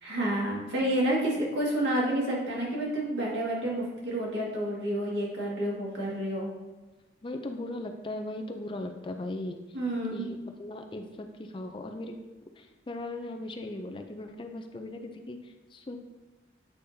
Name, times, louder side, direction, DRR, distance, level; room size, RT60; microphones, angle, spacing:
voice 1, 0.0-6.5 9.7-10.2, right 1 dB, 85° right, -4 dB, 1.9 m, -29 dB
voice 2, 7.2-9.6 10.1-12.2 12.6-16.0, left 2 dB, 30° left, 5 dB, 0.4 m, -38 dB
8.4 x 5.1 x 2.7 m, 1.1 s
head